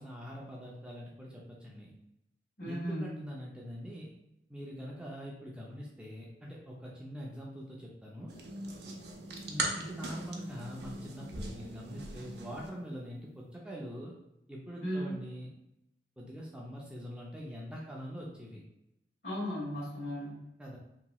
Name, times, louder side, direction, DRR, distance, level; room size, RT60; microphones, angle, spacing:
voice 1, 0.0-1.9 2.7-4.1 4.5-8.3 9.5-14.1 14.5-15.5 16.2-18.6 20.6-20.8, equal, 5° right, -3 dB, 0.3 m, -43 dB
voice 2, 2.6-3.2 14.8-15.2 19.2-20.5, equal, 70° left, -7 dB, 1.5 m, -36 dB
Slimy Pasta Stir, 8.3-12.7, right 2 dB, 75° right, 0.5 m, -40 dB
2.9 x 2.8 x 2.2 m, 0.84 s
head